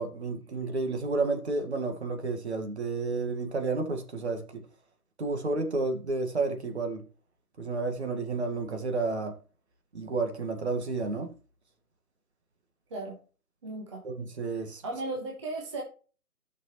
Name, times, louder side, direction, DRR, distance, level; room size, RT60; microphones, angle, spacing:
voice 1, 0.0-4.7 5.2-7.0 7.6-9.4 9.9-11.3 14.0-14.8, right 3 dB, 45° right, 1.8 m, -31 dB
voice 2, 13.6-14.0 14.8-15.8, right 2 dB, 20° right, 1.2 m, -35 dB
14.0 x 6.3 x 3.1 m
figure-of-eight pair, 150°, 45 cm